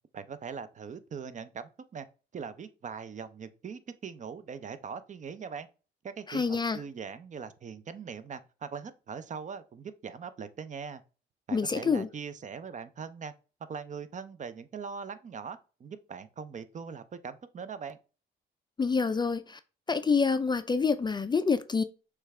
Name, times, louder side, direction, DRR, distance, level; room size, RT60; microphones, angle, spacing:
voice 1, 0.1-2.1 2.3-5.7 6.0-11.0 11.5-13.3 13.7-18.0, right 6 dB, 40° right, 0.5 m, -41 dB
voice 2, 6.3-6.8 11.5-12.1 18.8-19.6 19.9-21.8, left 5 dB, 20° left, 0.4 m, -27 dB
6.3 x 2.4 x 3.2 m
cardioid pair, 90°, 20 cm